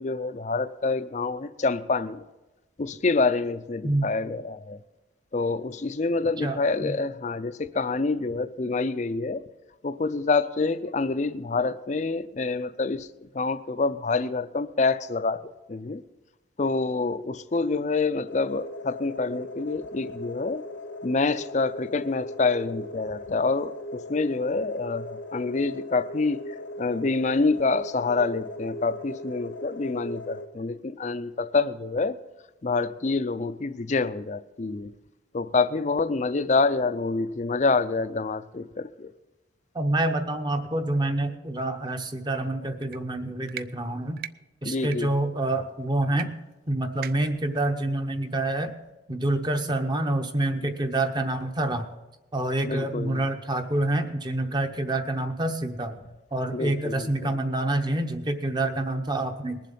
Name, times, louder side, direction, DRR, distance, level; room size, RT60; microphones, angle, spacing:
voice 1, 0.0-2.2 2.8-4.8 5.3-9.4 9.8-13.1 13.3-16.0 16.6-20.6 21.0-26.4 26.8-32.2 32.6-34.9 35.3-39.1 44.6-45.1 52.6-53.2 56.5-57.3, left 3 dB, 35° left, 13 dB, 0.5 m, -27 dB
voice 2, 6.4-7.0 39.7-44.2 44.6-46.3 46.7-48.7 49.1-51.9 52.3-56.0 56.3-59.6, right 1 dB, 20° right, 7 dB, 0.8 m, -27 dB
sound 1, 18.3-30.5, left 1 dB, 75° left, 1.0 m, -39 dB
sound 2, 42.8-43.0 43.5-43.7 44.2-44.3 44.8-45.0 46.2-46.3 46.5-46.6 47.0-47.4, right 11 dB, 50° right, 0.3 m, -38 dB
20.5 x 7.5 x 5.4 m, 1.1 s
head